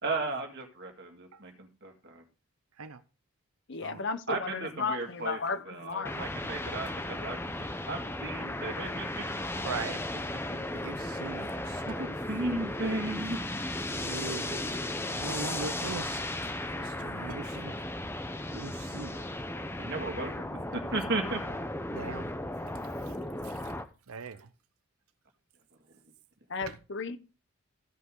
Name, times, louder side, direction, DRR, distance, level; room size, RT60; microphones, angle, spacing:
voice 1, 0.0-2.2 4.3-9.8 11.8-13.4 19.8-21.6, right 2 dB, 50° right, 2.2 m, -36 dB
voice 2, 3.7-6.2 26.5-27.2, left 4 dB, 55° left, 0.9 m, -34 dB
sound 1, 6.1-23.9, left 1 dB, 10° left, 0.7 m, -35 dB
voice 3, 9.6-10.0 10.8-12.0 13.9-14.8 15.1-16.3 16.7-17.7 18.5-19.3 21.9-22.3 23.4-23.7 24.1-24.5 26.6-26.8, right 4 dB, 75° right, 0.7 m, -40 dB
15.0 x 5.6 x 3.8 m
head